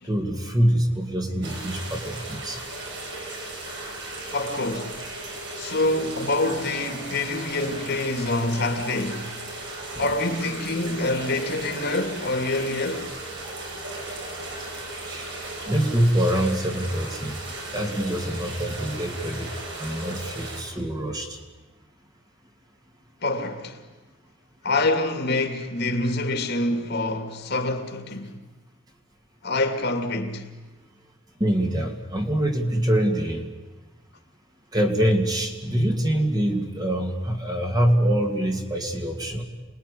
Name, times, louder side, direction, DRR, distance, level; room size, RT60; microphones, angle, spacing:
voice 1, 0.0-2.6 15.1-15.3 15.6-17.4 17.7-19.5 19.8-21.4 31.4-33.5 34.7-39.4, right 1 dB, 20° right, 2.5 m, -24 dB
sound 1, 1.4-20.6, right 2 dB, 60° right, 6.6 m, -36 dB
voice 2, 4.3-5.0 5.6-9.3 10.0-13.1 23.2-23.8 24.6-28.3 29.4-30.4, left 2 dB, 50° left, 2.7 m, -26 dB
27.5 x 20.5 x 10.0 m
head